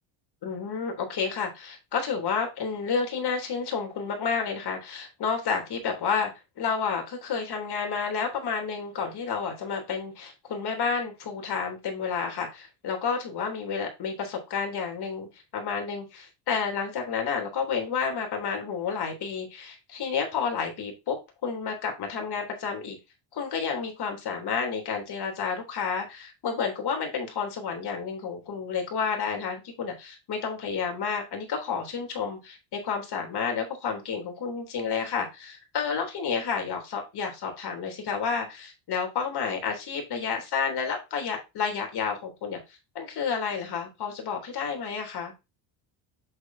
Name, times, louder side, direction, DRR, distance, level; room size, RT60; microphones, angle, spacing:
voice 1, 0.4-6.3 6.6-21.2 21.4-23.0 23.3-42.6 43.0-45.3, left 6 dB, 50° left, 3 dB, 3.5 m, -30 dB
8.0 x 6.5 x 2.8 m, 0.24 s
supercardioid pair, 95°, 50 cm